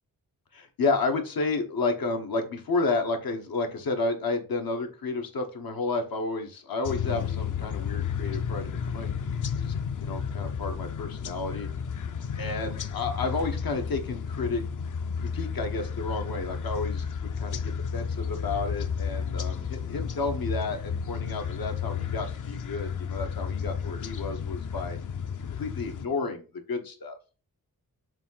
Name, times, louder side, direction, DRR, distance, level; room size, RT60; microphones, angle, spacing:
voice 1, 0.5-9.7 10.0-11.7 12.4-14.6 15.2-25.0 25.6-27.2, left 3 dB, 85° left, 5 dB, 1.4 m, -31 dB
sound 1, 6.9-26.1, left 6 dB, 60° left, 0.6 m, -32 dB
7.2 x 2.8 x 5.6 m, 0.34 s
wide cardioid pair, 125°, 34 cm